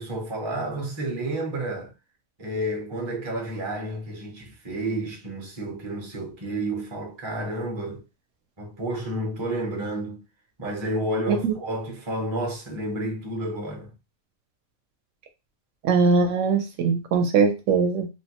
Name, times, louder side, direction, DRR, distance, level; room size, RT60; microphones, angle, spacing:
voice 1, 0.0-1.9 2.4-8.0 8.6-10.2 10.6-13.9, right 1 dB, 30° right, 0.5 m, -30 dB
voice 2, 15.8-18.1, right 5 dB, 70° right, 0.9 m, -21 dB
3.0 x 2.1 x 2.8 m
omnidirectional pair, 1.4 m